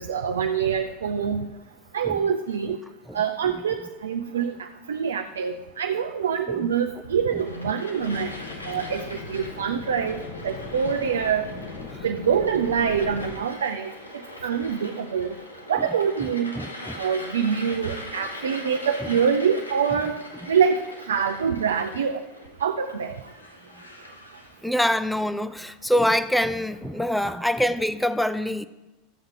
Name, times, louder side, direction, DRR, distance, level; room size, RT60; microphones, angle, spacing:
voice 1, 0.0-1.5 1.9-2.8 3.1-8.3 8.7-10.2 10.4-11.5 12.0-13.9 14.4-15.3 15.7-16.5 17.0-20.2 20.5-20.8 21.1-22.2 22.6-23.1, right 7 dB, 75° right, 0.6 m, -25 dB
voice 2, 3.1-3.5 6.6-6.7 7.3-7.4 11.9-12.0 15.8-15.9 16.6-17.1 24.6-28.7, equal, 5° left, 0.5 m, -25 dB
sound 1, 7.3-24.6, left 1 dB, 90° left, 1.3 m, -41 dB
sound 2, 8.0-13.4, left 4 dB, 50° left, 1.4 m, -39 dB
13.5 x 7.8 x 3.7 m
figure-of-eight pair, 80°, 0 cm